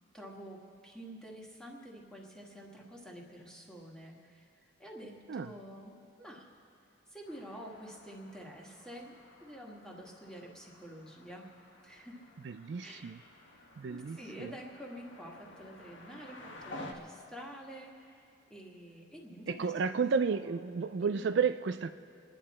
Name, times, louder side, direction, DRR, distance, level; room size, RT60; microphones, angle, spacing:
voice 1, 0.1-6.5 7.1-9.1 9.4-11.5 11.8-12.2 12.8-13.1 13.9-20.0 20.3-20.6 21.0-21.3, equal, 5° left, -2 dB, 1.7 m, -48 dB
sound 1, 7.2-16.9, left 2 dB, 75° left, 1.5 m, -52 dB
voice 2, 12.4-13.2 13.8-14.5 19.5-21.9, right 5 dB, 60° right, 10 dB, 0.4 m, -32 dB
29.0 x 10.5 x 4.3 m, 2.7 s
head